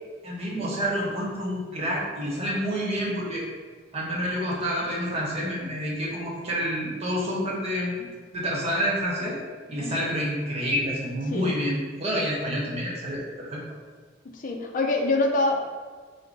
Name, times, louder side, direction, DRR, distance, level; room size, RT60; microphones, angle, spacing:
voice 1, 0.2-3.4 3.9-8.0 8.3-9.4 9.7-13.6, equal, 35° right, -5 dB, 1.0 m, -28 dB
voice 2, 14.2-15.6, left 2 dB, 45° left, 2 dB, 0.5 m, -25 dB
4.8 x 2.1 x 3.9 m, 1.5 s
head